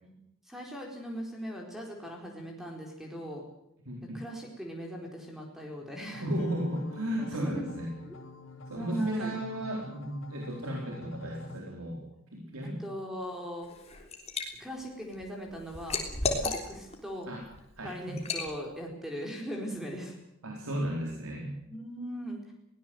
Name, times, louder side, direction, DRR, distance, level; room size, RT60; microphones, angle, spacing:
voice 1, 0.5-3.4 4.1-6.2 7.2-7.6 8.1-8.2 8.7-9.4 12.6-13.7 14.6-17.3 17.8-20.2 21.7-22.5, equal, ahead, 0 dB, 4.3 m, -39 dB
voice 2, 3.9-4.2 6.2-7.9 8.7-12.0 12.3-12.8 16.2-16.3 17.3-17.4 17.8-18.2 20.4-21.5, equal, 85° right, 0 dB, 4.3 m, -34 dB
sound 1, 6.1-11.6, left 2 dB, 60° left, 1.8 m, -47 dB
sound 2, 6.4-11.5, left 4 dB, 85° left, 3.4 m, -52 dB
Liquid, 13.6-14.5 14.9-17.0 17.4-17.6 18.2-18.5, left 3 dB, 30° left, 3.4 m, -33 dB
22.5 x 18.0 x 7.8 m, 0.80 s
head